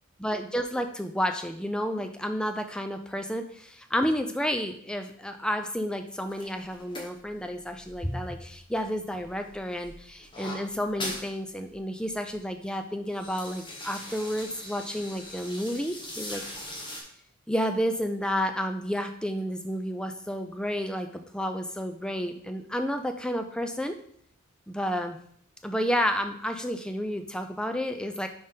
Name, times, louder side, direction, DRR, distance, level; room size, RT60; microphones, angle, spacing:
voice 1, 0.2-16.4 17.5-24.0 24.7-25.2 25.6-28.3, equal, 5° left, 6 dB, 0.4 m, -31 dB
sound 1, 6.3-8.8 9.1-11.3 11.7-11.8 12.0-12.4 12.9-17.0, left 1 dB, 20° left, 1.0 m, -41 dB
5.0 x 4.1 x 5.5 m, 0.64 s
head